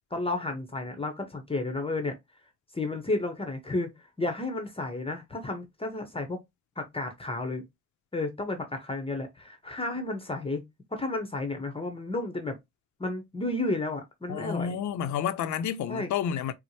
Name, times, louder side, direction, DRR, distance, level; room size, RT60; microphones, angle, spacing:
voice 1, 0.1-2.1 2.7-6.4 6.8-7.6 8.1-10.6 10.9-12.6 13.0-14.8 15.9-16.1, left 2 dB, 20° left, 0.8 m, -32 dB
voice 2, 14.3-16.5, left 8 dB, 70° left, 0.6 m, -30 dB
4.4 x 2.1 x 2.7 m
cardioid pair, 90°, 30 cm